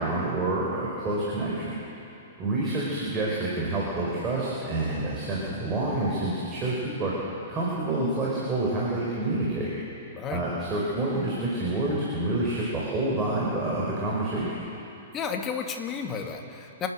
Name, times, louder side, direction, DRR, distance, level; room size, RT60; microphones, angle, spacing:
voice 1, 0.0-1.7 2.4-7.1 7.5-9.7 10.3-14.6, right 2 dB, 25° right, -5 dB, 5.2 m, -28 dB
voice 2, 15.1-16.9, left 6 dB, 25° left, 3 dB, 2.3 m, -32 dB
28.0 x 11.5 x 7.9 m, 2.8 s
figure-of-eight pair, 110°, 0 cm